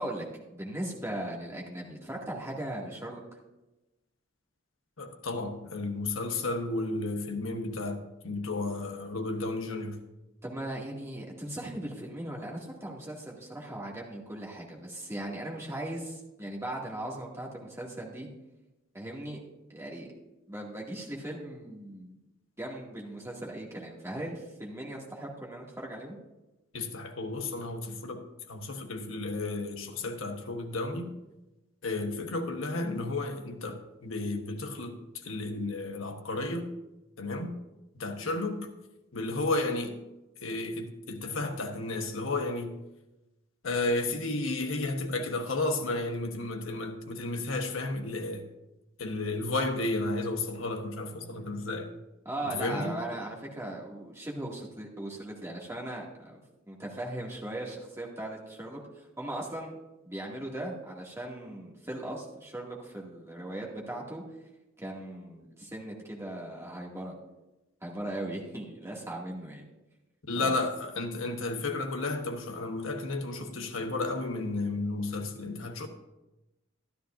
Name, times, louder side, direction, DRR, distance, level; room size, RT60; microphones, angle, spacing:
voice 1, 0.0-3.2 10.4-18.3 18.9-19.4 19.7-20.1 20.5-22.2 22.6-26.2 52.3-56.4 56.7-59.7 60.0-64.2 64.8-67.1 67.8-69.7 70.4-70.6, right 1 dB, 15° right, 2.1 m, -38 dB
voice 2, 5.0-10.0 26.7-31.1 31.8-35.0 35.2-36.7 37.2-37.6 37.9-38.7 39.1-40.0 40.4-42.7 43.6-48.4 49.0-51.9 52.4-53.0 70.3-75.9, left 2 dB, 80° left, 1.2 m, -32 dB
13.0 x 12.5 x 2.6 m
head